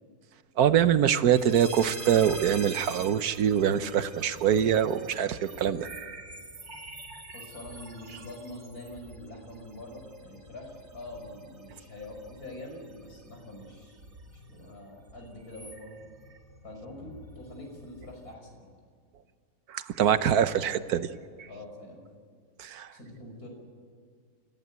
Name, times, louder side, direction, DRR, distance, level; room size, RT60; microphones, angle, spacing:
voice 1, 0.6-5.9 19.7-21.1 22.6-22.9, right 9 dB, 75° right, 12 dB, 1.3 m, -24 dB
sound 1, 1.3-18.3, right 3 dB, 45° right, 2.6 m, -46 dB
voice 2, 7.3-14.0 14.3-15.9 16.6-18.7 20.1-20.8 21.5-22.0 22.9-23.5, left 1 dB, 70° left, 2 dB, 5.9 m, -45 dB
29.5 x 14.0 x 9.2 m, 2.1 s
omnidirectional pair, 1.7 m